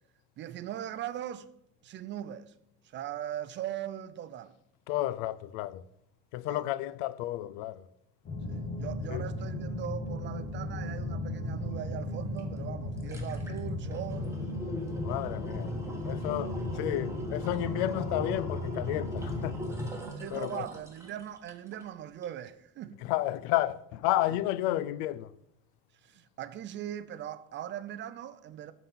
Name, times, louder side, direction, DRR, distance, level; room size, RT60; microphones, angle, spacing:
voice 1, 0.4-1.5 1.8-2.5 2.9-4.5 6.5-6.6 8.5-14.4 20.2-23.0 26.0-28.7, right 11 dB, 35° right, 0.4 m, -40 dB
voice 2, 4.9-5.9 6.3-7.8 9.1-9.2 15.0-15.7 16.0-19.6 20.3-20.7 23.0-25.3, left 14 dB, 75° left, 0.5 m, -31 dB
sound 1, 8.2-19.9, left 2 dB, 35° left, 1.6 m, -36 dB
sound 2, 12.4-12.5 12.8-21.9 22.2-22.3, equal, 10° right, 1.4 m, -42 dB
6.9 x 4.0 x 5.8 m
supercardioid pair, 120°, 33 cm